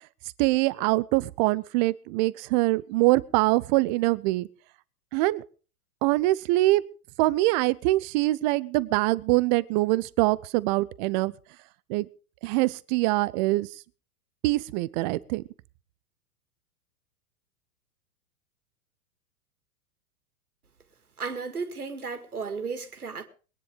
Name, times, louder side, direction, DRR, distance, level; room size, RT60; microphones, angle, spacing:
voice 1, 0.4-4.5 5.1-5.4 6.0-6.8 7.2-11.3 11.9-12.1 12.4-13.7 14.4-15.4, right 19 dB, 30° right, 0.7 m, -24 dB
voice 2, 21.2-23.3, right 5 dB, 80° right, 2.4 m, -34 dB
21.5 x 10.0 x 5.1 m
figure-of-eight pair, 100°, 44 cm